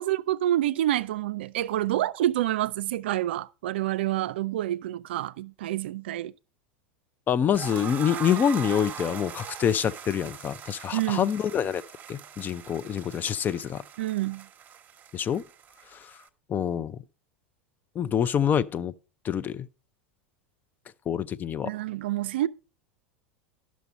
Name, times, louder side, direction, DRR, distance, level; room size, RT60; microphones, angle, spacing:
voice 1, 0.0-6.3 10.9-11.3 14.0-14.5 21.6-22.5, right 14 dB, 75° right, 0.3 m, -28 dB
voice 2, 7.3-11.8 12.1-13.8 15.1-15.4 15.9-16.2 16.5-17.0 18.0-18.9 19.2-19.7 21.1-21.7, left 8 dB, 30° left, 0.5 m, -26 dB
sound 1, 7.5-16.3, right 8 dB, 30° right, 1.1 m, -41 dB
11.0 x 6.2 x 4.0 m
hypercardioid pair, 90°, 6 cm